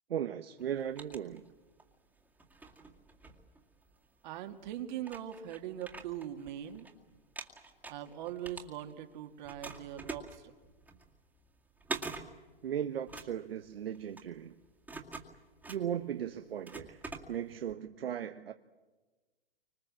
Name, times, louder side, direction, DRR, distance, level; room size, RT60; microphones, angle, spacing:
voice 1, 0.1-1.5 12.6-14.6 15.7-17.0 17.3-18.5, right 9 dB, 75° right, 1.1 m, -37 dB
sound 1, 0.6-1.9 2.4-4.0 4.6-4.7 5.0-6.9 7.2-9.1 9.4-17.7, right 3 dB, 5° right, 2.2 m, -45 dB
voice 2, 4.2-6.9 7.9-10.5, right 11 dB, 50° right, 2.3 m, -41 dB
29.0 x 25.5 x 7.6 m
hypercardioid pair, 130°, 29 cm